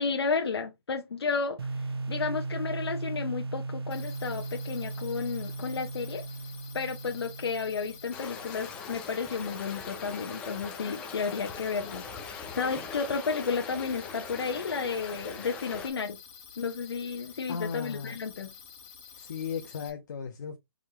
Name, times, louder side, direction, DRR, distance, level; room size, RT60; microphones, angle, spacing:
voice 1, 0.0-1.6 2.1-6.2 6.7-16.2 16.6-18.5, left 5 dB, 75° left, 1.0 m, -32 dB
sound 1, 1.6-8.4, right 3 dB, 70° right, 0.9 m, -37 dB
sound 2, 3.9-19.9, left 6 dB, 25° left, 1.9 m, -50 dB
sound 3, 8.1-15.9, left 6 dB, 10° left, 0.5 m, -41 dB
voice 2, 17.5-18.2 19.2-20.6, left 6 dB, 45° left, 0.6 m, -36 dB
4.8 x 3.7 x 2.9 m
hypercardioid pair, 170°, 13 cm